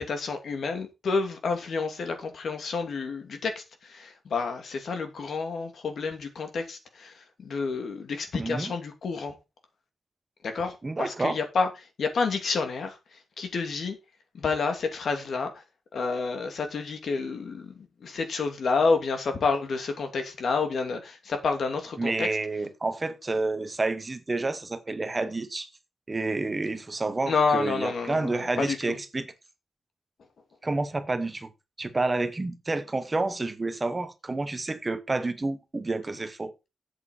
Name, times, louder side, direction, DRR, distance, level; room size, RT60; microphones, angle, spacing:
voice 1, 0.0-9.4 10.4-11.7 12.0-14.0 14.3-15.6 15.9-22.3 27.3-29.0, left 4 dB, 60° left, 2.6 m, -29 dB
voice 2, 8.3-8.7 10.8-11.4 22.0-25.7 26.1-29.3 30.6-31.5 31.8-36.5, right 2 dB, 20° right, 1.0 m, -29 dB
12.0 x 8.3 x 4.3 m
wide cardioid pair, 180°, 0 cm